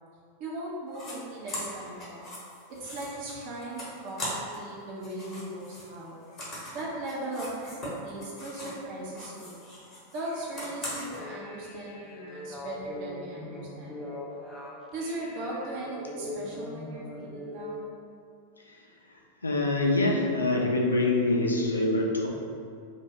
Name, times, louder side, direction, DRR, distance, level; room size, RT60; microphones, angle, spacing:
voice 1, 0.4-2.2 2.8-6.2 6.7-9.6 10.1-14.3 14.9-18.0, right 1 dB, 45° right, -5 dB, 0.5 m, -38 dB
sound 1, 0.9-1.1 1.5-4.7 5.0-8.8 9.1-11.2, left 1 dB, 25° left, 0.8 m, -40 dB
sound 2, 11.0-17.7, left 1 dB, 5° left, 0.4 m, -41 dB
voice 2, 19.4-22.3, left 2 dB, 80° left, 0 dB, 0.3 m, -25 dB
2.2 x 2.1 x 3.3 m, 2.3 s
figure-of-eight pair, 90°, 0 cm